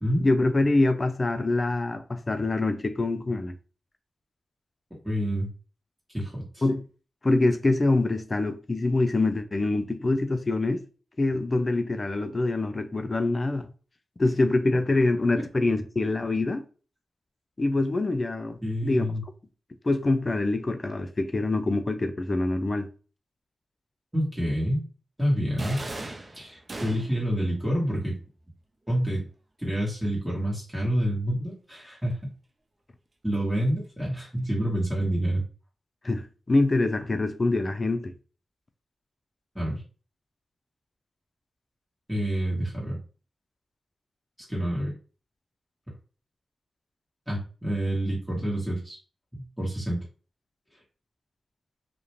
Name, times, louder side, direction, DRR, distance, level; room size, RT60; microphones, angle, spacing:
voice 1, 0.2-3.6 6.6-6.8 7.2-10.8 11.2-13.7 14.2-16.6 17.6-19.0 19.8-22.9 36.0-38.1, left 2 dB, 40° left, 0.4 m, -25 dB
voice 2, 5.0-5.5 6.1-6.6 18.6-19.2 24.1-24.8 25.2-25.8 26.3-28.1 28.9-29.2 29.6-32.2 33.2-35.4 39.5-39.8 42.1-43.0 44.5-44.9 47.3-49.0 49.4-50.0, equal, 5° right, 1.2 m, -28 dB
sound 1, 25.6-27.3, right 2 dB, 50° right, 0.5 m, -38 dB
2.4 x 2.1 x 3.0 m
cardioid pair, 45°, 0 cm